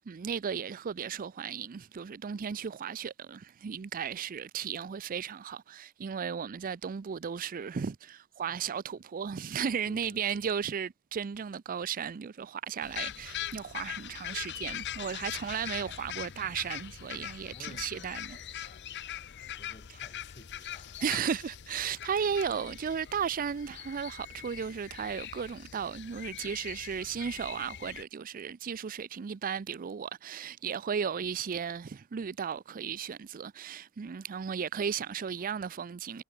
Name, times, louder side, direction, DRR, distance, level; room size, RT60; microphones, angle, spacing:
voice 1, 0.0-18.7 21.0-36.2, right 7 dB, 40° right, 0.4 m, -35 dB
voice 2, 8.5-9.0 9.8-10.5 17.5-21.1, left 2 dB, 30° left, 3.2 m, -56 dB
sound 1, 12.8-28.0, left 11 dB, 55° left, 0.7 m, -42 dB
head